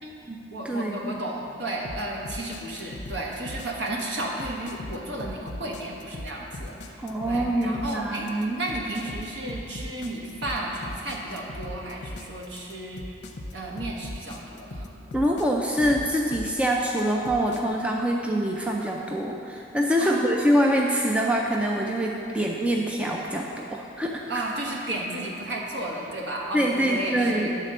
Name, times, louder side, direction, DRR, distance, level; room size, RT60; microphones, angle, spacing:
voice 1, 0.0-13.1 13.5-14.9 20.0-20.4 24.3-27.6, right 1 dB, 75° right, -2 dB, 1.3 m, -33 dB
voice 2, 0.6-1.2 7.0-8.6 15.1-24.4 26.5-27.5, equal, 5° right, -1 dB, 0.4 m, -25 dB
sound 1, 1.8-17.6, left 1 dB, 65° left, 0.7 m, -38 dB
10.0 x 4.1 x 6.6 m, 3.0 s
head